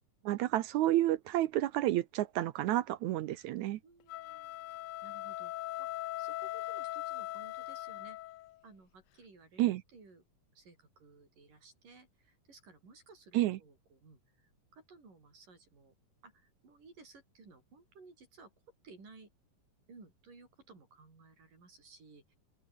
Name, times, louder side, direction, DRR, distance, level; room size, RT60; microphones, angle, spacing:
voice 1, 0.3-3.8 9.6-9.8 13.3-13.6, right 14 dB, 70° right, 2.0 m, -30 dB
voice 2, 3.8-8.2 8.6-10.2 10.6-15.9 16.2-18.5 18.8-19.3 19.9-22.3, right 4 dB, 90° right, 9.3 m, -58 dB
sound 1, 4.0-8.6, left 15 dB, 75° left, 1.6 m, -40 dB
open air
omnidirectional pair, 3.7 m